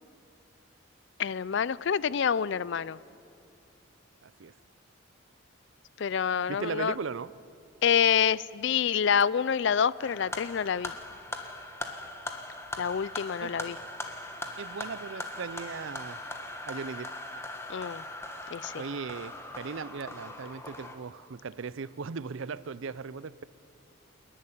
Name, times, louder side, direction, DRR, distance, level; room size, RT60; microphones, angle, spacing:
voice 1, 1.2-3.0 6.0-6.9 7.8-10.9 12.8-13.8 17.7-18.0 18.5-18.8, left 7 dB, 60° left, 0.4 m, -27 dB
voice 2, 4.2-4.5 6.5-7.3 13.4-13.6 14.6-16.2 16.7-17.1 18.8-23.4, right 5 dB, 65° right, 0.5 m, -38 dB
sound 1, 10.0-21.0, left 2 dB, 15° left, 1.5 m, -40 dB
28.5 x 11.0 x 9.9 m
head